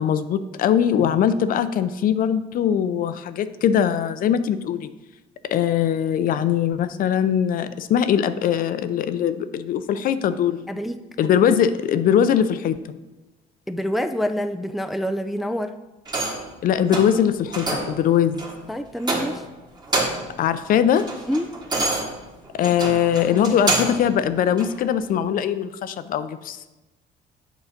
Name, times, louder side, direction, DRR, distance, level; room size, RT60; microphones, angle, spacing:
voice 1, 0.0-4.9 5.4-10.7 11.2-12.8 16.6-18.4 20.4-21.1 22.5-26.6, left 9 dB, 55° left, 12 dB, 0.5 m, -21 dB
voice 2, 10.7-11.0 13.7-15.7 18.7-19.4 21.3-21.5, equal, ahead, 9 dB, 0.3 m, -26 dB
sound 1, 16.1-16.5 16.9-17.2 17.5-18.0 18.4-18.6 19.0-19.5 19.8-20.4 20.7-24.1 24.6-24.7, right 2 dB, 25° right, 1.6 m, -26 dB
8.1 x 3.9 x 5.7 m, 1.1 s
cardioid pair, 110°, 17 cm